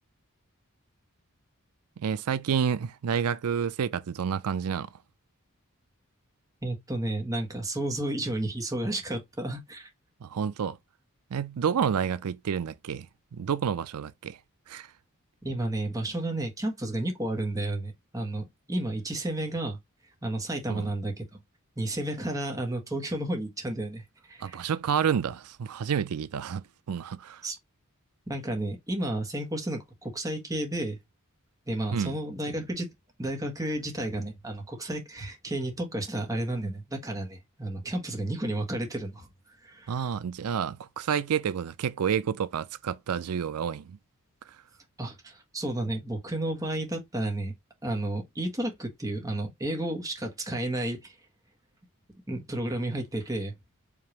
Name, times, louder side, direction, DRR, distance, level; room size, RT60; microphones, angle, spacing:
voice 1, 2.0-4.9 10.2-10.8 11.3-13.1 13.3-14.4 14.7-14.9 20.7-20.9 24.4-27.4 31.9-32.2 39.9-44.0, right 7 dB, 85° right, 0.4 m, -29 dB
voice 2, 6.6-9.9 15.4-19.8 20.2-21.4 21.8-24.0 24.3-24.6 27.4-27.6 28.3-31.0 31.7-32.9 33.2-39.3 39.6-40.0 45.0-47.5 47.8-51.1 52.3-53.5, right 1 dB, 15° right, 1.4 m, -32 dB
5.0 x 2.8 x 2.9 m
head